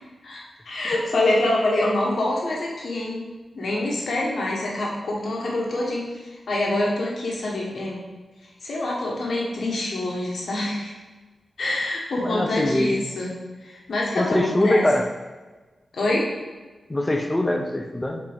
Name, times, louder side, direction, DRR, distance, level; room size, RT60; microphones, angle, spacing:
voice 1, 0.2-3.2 3.5-8.0 8.6-10.9 11.6-13.3 13.6-14.9 15.9-16.3, left 1 dB, 70° left, -3 dB, 1.4 m, -26 dB
voice 2, 12.2-13.0 14.2-15.1 16.9-18.2, left 1 dB, 15° left, 4 dB, 0.7 m, -22 dB
7.4 x 4.6 x 3.6 m, 1.2 s
wide cardioid pair, 100°, 0 cm